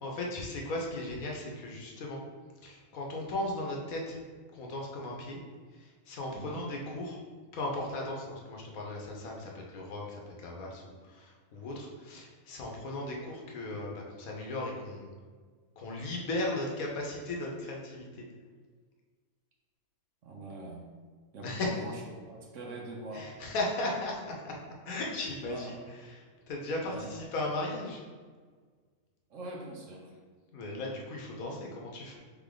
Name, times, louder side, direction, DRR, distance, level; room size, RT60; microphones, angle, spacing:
voice 1, 0.0-2.2 2.6-4.2 4.5-5.4 5.7-7.2 7.5-15.1 15.8-18.2 21.4-21.8 23.1-24.5 24.8-25.7 26.1-28.0 30.5-32.2, left 2 dB, 70° left, -1 dB, 1.2 m, -36 dB
voice 2, 6.3-6.7 20.2-20.8 21.3-22.0 22.2-23.3 25.4-25.8 26.9-27.2 29.3-30.1, right 2 dB, 65° right, -1 dB, 1.0 m, -43 dB
3.8 x 3.5 x 3.8 m, 1.5 s
omnidirectional pair, 1.6 m